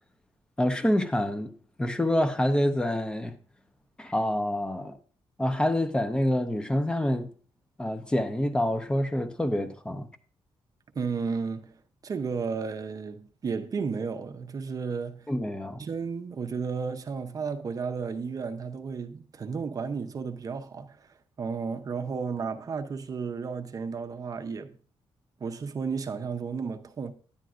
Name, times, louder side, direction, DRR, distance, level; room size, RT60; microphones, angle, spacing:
voice 1, 0.6-1.5 1.8-3.3 4.0-5.0 5.4-7.3 7.8-10.1 15.3-15.8, left 1 dB, 10° left, 0.7 m, -27 dB
voice 2, 10.9-15.3 15.8-24.8 25.4-27.1, right 5 dB, 35° right, 0.7 m, -33 dB
10.5 x 8.9 x 2.5 m
cardioid pair, 145°, 10 cm